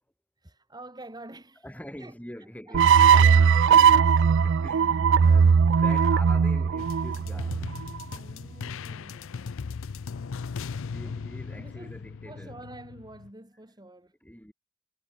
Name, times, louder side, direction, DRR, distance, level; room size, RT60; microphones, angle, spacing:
voice 1, 0.4-1.7 2.0-2.1 2.4-2.8 3.6-4.3 8.1-9.6 11.0-11.1 11.5-14.1, right 2 dB, 20° right, 3.0 m, -47 dB
voice 2, 1.6-3.6 4.4-7.7 10.8-12.6 14.2-14.5, equal, 5° left, 4.6 m, -45 dB
sound 1, 2.7-8.0, right 6 dB, 55° right, 0.4 m, -19 dB
sound 2, 6.8-13.3, left 5 dB, 60° left, 0.5 m, -38 dB
head